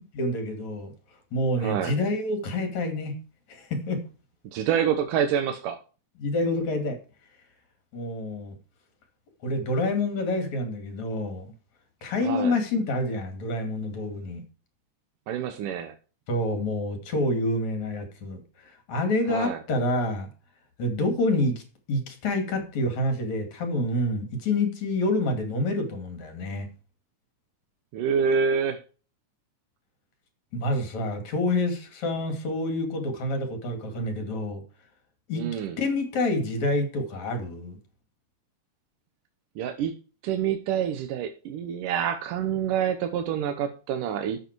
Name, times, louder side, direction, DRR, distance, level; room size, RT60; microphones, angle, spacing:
voice 1, 0.2-0.9 1.3-3.2 3.5-4.0 6.2-7.0 7.9-8.5 9.4-11.5 12.0-14.4 16.3-20.3 20.8-21.6 21.9-26.7 30.5-34.6 35.3-37.8, left 2 dB, 60° left, 6 dB, 3.7 m, -27 dB
voice 2, 1.6-1.9 4.5-5.8 12.2-12.6 15.3-15.9 19.3-19.6 27.9-28.8 35.4-35.8 39.6-39.9 40.2-44.4, right 8 dB, 85° right, 7 dB, 2.6 m, -27 dB
12.5 x 7.8 x 4.6 m, 0.36 s
omnidirectional pair, 3.6 m